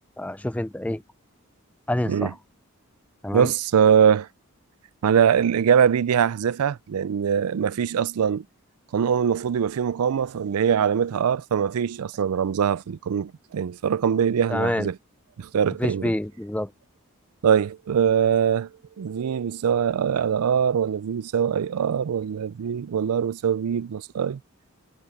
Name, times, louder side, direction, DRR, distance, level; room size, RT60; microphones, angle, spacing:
voice 1, 0.2-1.0 1.9-2.3 3.2-3.5 14.5-14.9 15.6-16.7, left 1 dB, 5° left, 0.4 m, -27 dB
voice 2, 3.3-4.3 5.0-8.4 8.9-15.0 15.4-16.1 17.4-18.7 19.0-24.4, right 8 dB, 85° right, 0.4 m, -22 dB
head